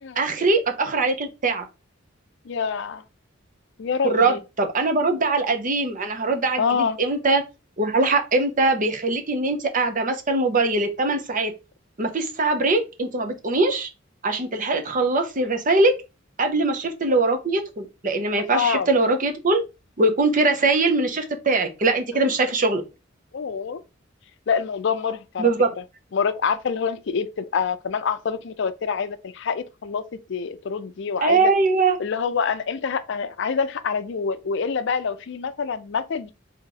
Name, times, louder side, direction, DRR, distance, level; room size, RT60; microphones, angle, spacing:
voice 1, 0.2-1.6 4.0-7.4 7.8-11.5 12.0-13.9 14.2-15.9 16.4-19.6 20.0-22.8 25.4-25.7 31.2-32.0, right 3 dB, 40° right, 0.8 m, -22 dB
voice 2, 2.4-3.0 3.8-4.4 6.6-7.0 18.5-18.9 23.3-23.8 24.5-25.5 26.1-31.5 32.0-36.3, left 6 dB, 65° left, 0.5 m, -26 dB
3.6 x 3.0 x 3.8 m
head